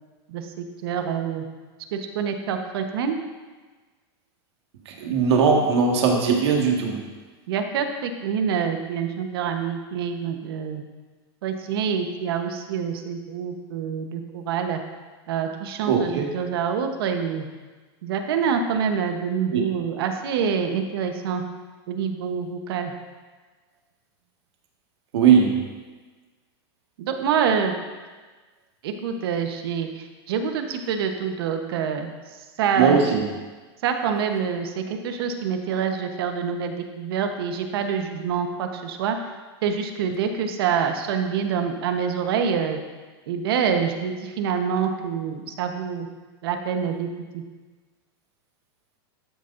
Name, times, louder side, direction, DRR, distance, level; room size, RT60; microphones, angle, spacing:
voice 1, 0.3-1.4 1.9-3.2 7.5-10.8 11.4-14.8 15.3-17.5 18.0-21.4 21.9-22.9 27.0-27.7 28.8-32.1 32.6-33.0 33.8-39.2 39.6-42.8 43.3-46.1 46.4-47.1 47.3-47.4, right 7 dB, 60° right, 5 dB, 1.1 m, -26 dB
voice 2, 4.8-7.0 15.9-16.4 19.5-19.6 25.1-25.7 32.7-33.2, right 6 dB, 80° right, 0 dB, 1.8 m, -19 dB
12.5 x 9.5 x 2.6 m, 1.3 s
supercardioid pair, 165°, 14 cm